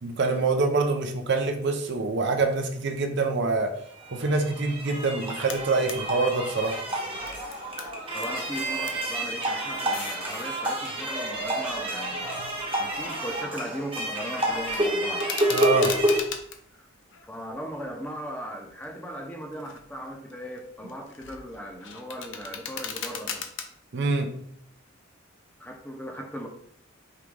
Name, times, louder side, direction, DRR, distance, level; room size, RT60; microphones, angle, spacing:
voice 1, 0.0-3.8 4.1-6.8 12.4-12.5 15.5-16.0 23.9-24.4, right 3 dB, 55° right, 5 dB, 0.5 m, -25 dB
sound 1, 3.9-16.2, right 1 dB, 25° right, 0.9 m, -29 dB
sound 2, 5.5-6.0 6.4-8.3 8.6-9.1 9.7-10.6 11.3-13.4 13.7-14.1 14.4-16.6 17.1-18.0 18.6-18.8 19.4-19.9 20.3-23.6, left 7 dB, 60° left, 0.6 m, -39 dB
voice 2, 8.1-12.4 12.8-15.3 16.7-16.8 17.2-23.5 25.6-26.5, equal, 10° left, 1 dB, 0.6 m, -38 dB
4.7 x 2.9 x 3.6 m, 0.67 s
head